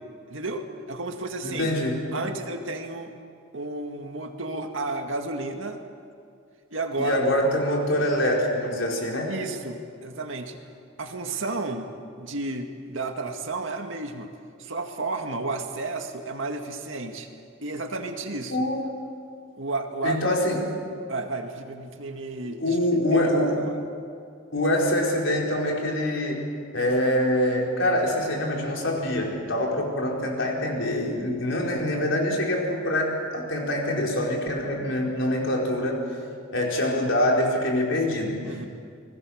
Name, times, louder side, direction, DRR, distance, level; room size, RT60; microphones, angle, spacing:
voice 1, 0.3-1.7 2.1-3.1 3.5-5.8 6.7-7.3 9.3-10.6 11.0-11.9 12.2-14.3 14.6-17.3 17.6-18.6 19.6-20.4 21.1-22.8 23.1-23.8 38.4-38.7, right 2 dB, 70° right, 4 dB, 2.2 m, -32 dB
voice 2, 1.4-2.0 7.0-9.4 18.5-18.8 20.0-20.6 22.4-23.6 24.5-26.4 26.7-36.0 36.5-38.4, left 1 dB, 65° left, -1 dB, 4.9 m, -25 dB
29.5 x 21.0 x 6.6 m, 2.3 s
head